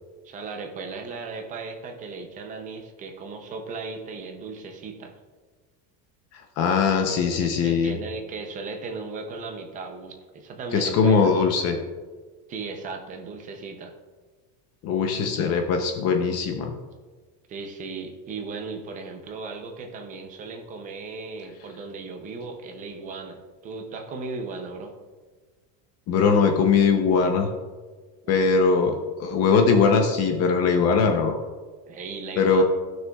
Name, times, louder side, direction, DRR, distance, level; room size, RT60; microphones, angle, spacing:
voice 1, 0.2-5.2 7.1-7.2 7.6-11.3 12.5-13.9 17.5-24.9 28.2-28.5 31.9-32.6, right 4 dB, 20° right, 4 dB, 0.4 m, -36 dB
voice 2, 6.3-8.0 10.7-11.8 14.8-16.7 26.1-27.5 28.3-31.3 32.4-32.6, left 5 dB, 35° left, 4 dB, 0.6 m, -21 dB
15.5 x 6.2 x 2.2 m, 1.4 s
cardioid pair, 180°, 45 cm